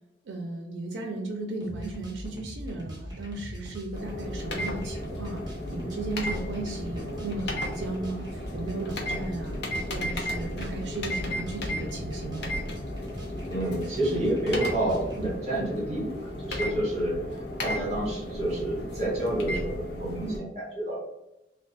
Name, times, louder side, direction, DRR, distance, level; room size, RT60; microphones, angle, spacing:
voice 1, 0.3-9.6 9.9-12.5, right 2 dB, 85° right, 2 dB, 0.4 m, -35 dB
sound 1, 1.6-15.3, equal, 25° right, 0.6 m, -41 dB
sound 2, 3.9-20.4, left 1 dB, 65° left, 0.6 m, -34 dB
voice 2, 13.5-21.0, right 1 dB, 40° right, -4 dB, 1.0 m, -29 dB
2.3 x 2.2 x 2.5 m, 0.93 s
head